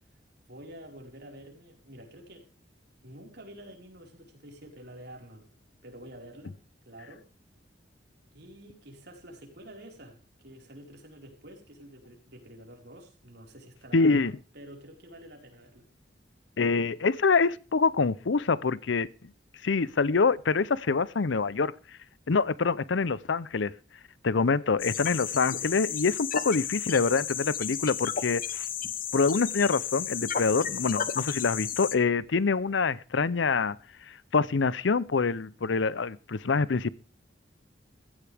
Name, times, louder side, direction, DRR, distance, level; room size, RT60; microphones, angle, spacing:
voice 1, 0.5-2.5 3.0-5.5 5.8-6.6 6.8-7.3 8.3-15.9, right 1 dB, 65° right, 4.7 m, -48 dB
voice 2, 13.9-14.3 16.6-19.1 19.6-21.7 22.3-23.7 24.2-28.7 29.1-33.8 34.1-36.9, left 4 dB, 90° left, 0.7 m, -25 dB
sound 1, 24.8-32.0, left 9 dB, 50° left, 1.1 m, -33 dB
15.5 x 15.0 x 3.5 m
head